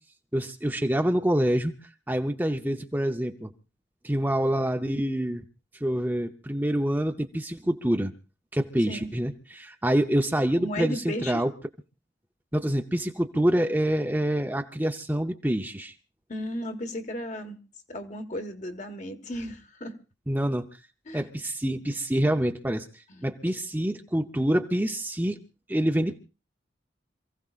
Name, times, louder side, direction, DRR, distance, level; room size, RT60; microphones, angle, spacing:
voice 1, 0.3-1.7 2.1-3.5 4.0-5.4 5.8-8.1 8.5-11.5 12.5-15.9 20.3-20.7 21.1-25.4 25.7-26.2, right 1 dB, 10° right, 0.7 m, -26 dB
voice 2, 10.6-11.4 16.3-17.6 17.9-20.0 21.1-21.3 23.1-23.3, left 1 dB, 40° left, 1.4 m, -35 dB
27.5 x 16.0 x 2.5 m
head